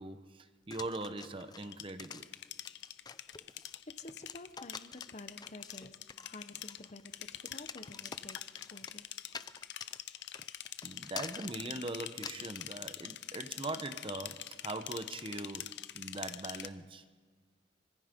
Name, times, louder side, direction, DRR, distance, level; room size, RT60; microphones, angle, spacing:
voice 1, 0.0-2.3 10.8-17.0, right 2 dB, 30° right, 0.9 m, -41 dB
sound 1, 0.7-12.7, left 5 dB, 20° left, 0.5 m, -48 dB
sound 2, 1.6-16.7, left 12 dB, 70° left, 0.7 m, -45 dB
voice 2, 4.0-9.1, left 2 dB, 40° left, 1.0 m, -51 dB
25.0 x 24.5 x 5.3 m
head